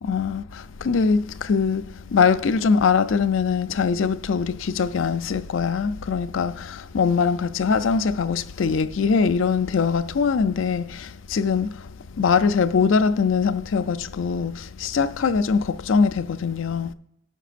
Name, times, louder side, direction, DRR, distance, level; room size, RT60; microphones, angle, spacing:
voice 1, 0.0-11.9 12.2-16.9, left 5 dB, 75° left, 0.5 m, -22 dB
18.0 x 6.0 x 2.5 m
head